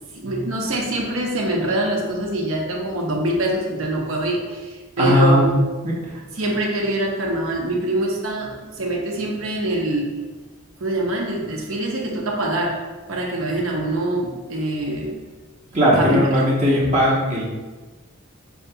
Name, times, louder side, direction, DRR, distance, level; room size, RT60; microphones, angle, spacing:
voice 1, 0.1-5.5 6.4-10.2 10.8-12.8 13.1-15.1 16.0-16.2, right 1 dB, 75° right, 0 dB, 0.8 m, -24 dB
voice 2, 5.0-5.5 5.8-6.2 15.7-17.4, equal, 35° right, -6 dB, 0.8 m, -18 dB
7.0 x 2.8 x 2.2 m, 1.2 s
head